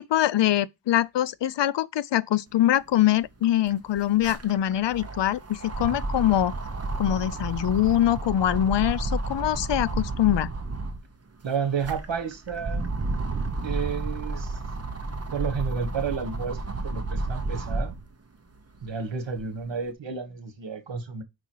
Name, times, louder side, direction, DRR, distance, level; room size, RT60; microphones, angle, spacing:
voice 1, 0.0-6.5 7.0-10.5, left 12 dB, 75° left, 0.5 m, -23 dB
sound 1, 2.9-3.0 3.3-11.1 11.6-18.1 18.6-19.7, right 2 dB, 35° right, 1.1 m, -32 dB
voice 2, 11.4-12.9 13.6-14.5 15.3-17.9 18.8-21.2, right 6 dB, 80° right, 1.5 m, -31 dB
5.3 x 4.8 x 4.5 m
wide cardioid pair, 80°, 44 cm